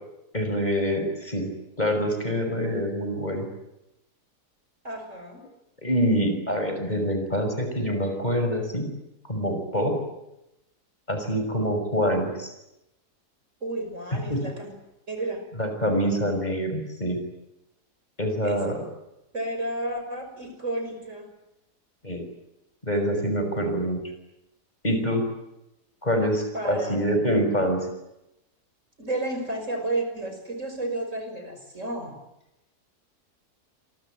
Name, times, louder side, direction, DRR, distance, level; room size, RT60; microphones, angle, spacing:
voice 1, 0.3-1.5 1.8-3.5 5.8-8.9 9.2-10.0 11.1-12.5 14.3-14.4 15.6-17.2 18.2-18.8 22.0-22.3 22.8-24.0 24.8-25.2 26.0-27.8, equal, 25° left, 5 dB, 6.1 m, -25 dB
voice 2, 4.8-5.4 13.6-14.7 15.1-15.4 18.4-18.6 19.3-21.3 26.5-27.0 29.0-32.2, right 2 dB, 45° right, 6 dB, 6.3 m, -31 dB
27.5 x 23.5 x 9.1 m, 0.88 s
omnidirectional pair, 1.7 m